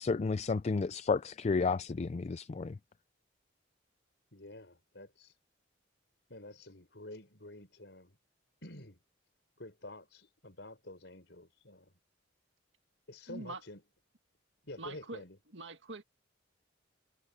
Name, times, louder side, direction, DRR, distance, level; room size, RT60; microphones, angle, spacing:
voice 1, 0.0-2.8, left 4 dB, 35° left, 0.4 m, -32 dB
voice 2, 4.3-5.3 6.3-8.2 8.6-9.0 9.6-11.9 13.1-13.8 14.6-15.4, left 1 dB, 65° left, 6.3 m, -49 dB
voice 3, 13.3-13.6 14.8-16.0, right 2 dB, 75° right, 1.9 m, -44 dB
head